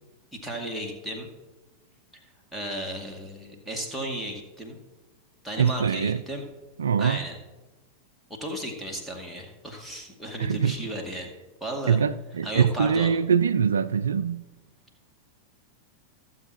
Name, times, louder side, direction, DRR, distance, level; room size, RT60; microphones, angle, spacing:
voice 1, 0.3-1.3 2.5-4.8 5.4-6.4 7.0-7.4 8.4-11.3 11.6-12.0 12.4-13.1, right 1 dB, ahead, 2.2 m, -34 dB
voice 2, 5.6-6.2 6.8-7.2 10.4-10.8 11.9-14.5, right 7 dB, 70° right, 0.3 m, -23 dB
14.5 x 7.5 x 4.3 m
figure-of-eight pair, 90°, 0 cm